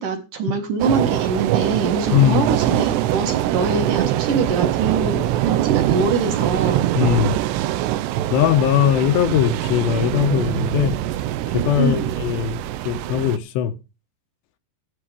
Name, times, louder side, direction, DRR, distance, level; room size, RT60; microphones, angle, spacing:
voice 1, 0.0-6.8 11.8-12.1, right 4 dB, 55° right, 2.8 m, -24 dB
sound 1, 0.8-13.4, right 13 dB, 80° right, 2.8 m, -23 dB
voice 2, 2.1-2.4 7.0-7.4 8.3-11.0 11.5-13.7, left 10 dB, 80° left, 3.1 m, -20 dB
14.0 x 6.8 x 5.0 m
omnidirectional pair, 5.0 m